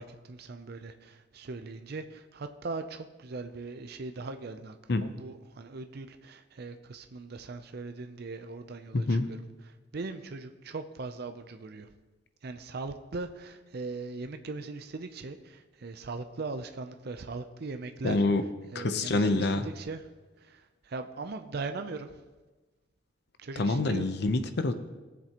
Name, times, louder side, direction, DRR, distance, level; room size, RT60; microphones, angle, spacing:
voice 1, 0.0-9.2 9.9-11.9 12.4-18.2 18.7-20.0 20.4-22.1 23.4-24.1, right 3 dB, 55° right, 8 dB, 0.5 m, -39 dB
voice 2, 8.9-9.3 18.0-18.5 18.7-19.7 23.6-24.7, left 2 dB, 60° left, 10 dB, 0.7 m, -26 dB
17.5 x 7.4 x 2.9 m, 1.2 s
head